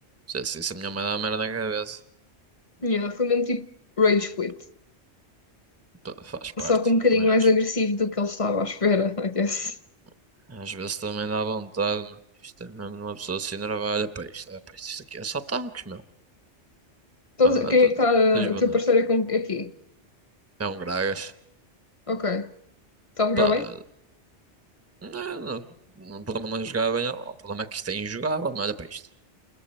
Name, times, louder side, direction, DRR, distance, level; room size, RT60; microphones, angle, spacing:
voice 1, 0.3-2.0 6.0-6.7 7.1-7.5 10.5-16.0 17.4-17.9 18.3-18.8 20.6-21.3 23.4-23.8 25.0-25.6 26.0-29.1, right 4 dB, 15° right, 0.9 m, -30 dB
voice 2, 2.8-3.7 4.0-4.6 6.6-9.7 17.4-19.7 22.1-22.5 23.2-23.7, left 3 dB, 30° left, 0.9 m, -22 dB
29.0 x 21.5 x 4.4 m
omnidirectional pair, 1.2 m